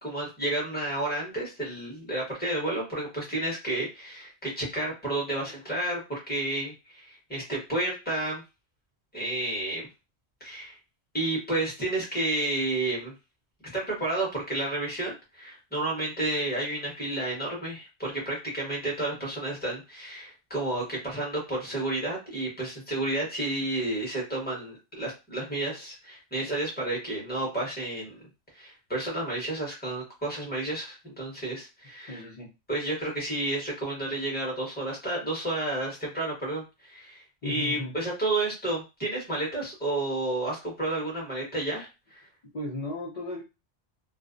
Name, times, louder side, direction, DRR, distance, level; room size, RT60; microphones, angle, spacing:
voice 1, 0.0-8.4 9.1-9.9 10.4-10.8 11.1-13.1 13.7-28.2 28.5-32.2 32.7-42.3, right 2 dB, 10° left, -4 dB, 1.0 m, -31 dB
voice 2, 32.1-32.5 37.4-37.9 42.5-43.4, left 1 dB, 40° left, -5 dB, 0.6 m, -35 dB
2.4 x 2.0 x 2.5 m, 0.27 s
omnidirectional pair, 1.1 m